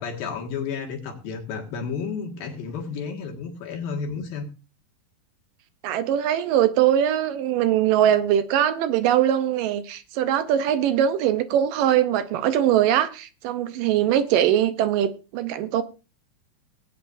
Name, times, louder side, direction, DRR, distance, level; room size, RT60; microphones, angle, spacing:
voice 1, 0.0-4.5, left 5 dB, 80° left, 3.7 m, -32 dB
voice 2, 5.8-15.8, right 11 dB, 75° right, 2.3 m, -21 dB
20.5 x 9.0 x 2.6 m
omnidirectional pair, 4.1 m